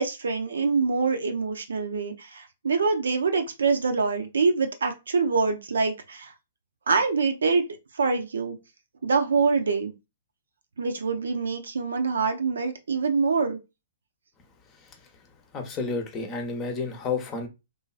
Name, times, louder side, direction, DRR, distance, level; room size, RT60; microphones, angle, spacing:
voice 1, 0.0-6.3 6.9-7.6 7.9-8.6 9.0-9.9 10.8-13.6, right 4 dB, 70° right, 0.5 m, -25 dB
voice 2, 14.8-15.1 15.5-17.5, left 4 dB, 25° left, 0.8 m, -31 dB
3.0 x 2.4 x 2.4 m
figure-of-eight pair, 115°, 0 cm